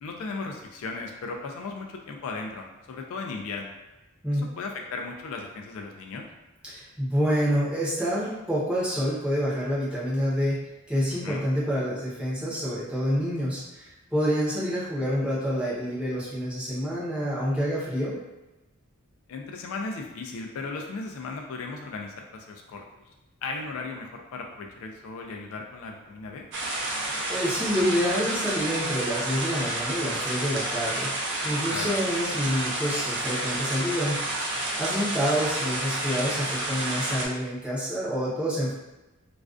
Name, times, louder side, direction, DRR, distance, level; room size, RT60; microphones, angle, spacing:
voice 1, 0.0-3.8 4.3-6.2 11.2-11.4 19.3-22.8 23.4-26.4 31.7-32.0, left 3 dB, 65° left, 2 dB, 0.3 m, -36 dB
voice 2, 6.6-18.2 27.0-38.7, equal, 5° right, -8 dB, 0.6 m, -28 dB
sound 1, 26.5-37.3, right 1 dB, 55° right, 0.5 m, -30 dB
2.4 x 2.2 x 2.4 m, 1.0 s
head